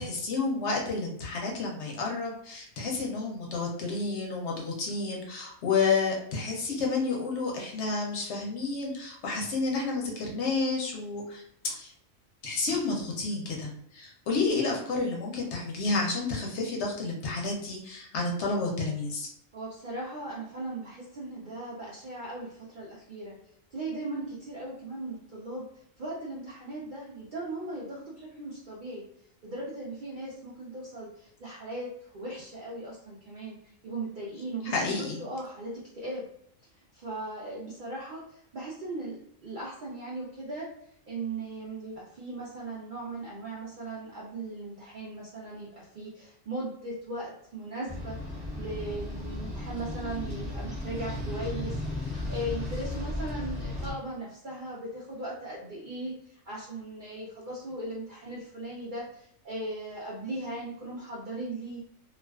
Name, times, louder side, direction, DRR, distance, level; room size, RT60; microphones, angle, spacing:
voice 1, 0.0-11.9 12.4-19.3 34.6-35.2, left 3 dB, 65° left, -1 dB, 0.8 m, -30 dB
voice 2, 19.5-23.4 23.7-25.6 26.0-29.0 29.4-33.6 33.8-34.9 35.2-36.2 36.9-40.7 41.0-48.2 48.6-61.8, right 2 dB, 60° right, -5 dB, 0.5 m, -38 dB
sound 1, 47.9-53.9, left 1 dB, 5° right, 0.8 m, -35 dB
2.3 x 2.3 x 2.2 m, 0.70 s
omnidirectional pair, 1.4 m